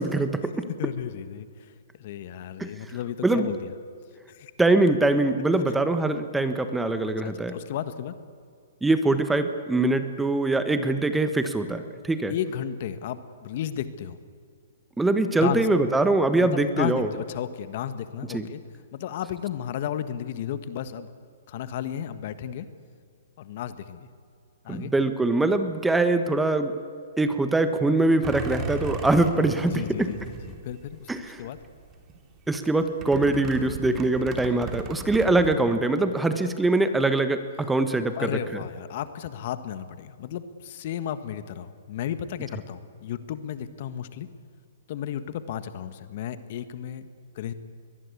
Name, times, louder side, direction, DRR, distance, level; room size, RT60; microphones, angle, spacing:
voice 1, 0.0-0.7 2.6-2.7 3.2-3.5 4.6-7.6 8.8-12.3 15.0-17.1 18.3-18.5 24.7-26.8 27.2-30.1 31.1-31.4 32.5-38.6, right 2 dB, 5° right, 9 dB, 1.3 m, -23 dB
voice 2, 0.8-1.7 2.0-3.7 4.3-4.5 7.2-8.1 12.3-14.2 15.4-15.7 16.4-18.6 18.9-21.1 21.5-22.7 23.4-24.1 24.6-24.9 29.5-31.1 31.4-31.6 38.2-44.3 44.9-47.1 47.3-47.5, left 10 dB, 50° left, 12 dB, 1.5 m, -33 dB
sound 1, 28.2-31.2 31.6-32.1 33.0-35.5, right 5 dB, 25° right, 3.1 m, -36 dB
22.5 x 20.5 x 8.5 m, 2.2 s
hypercardioid pair, 135°, 0 cm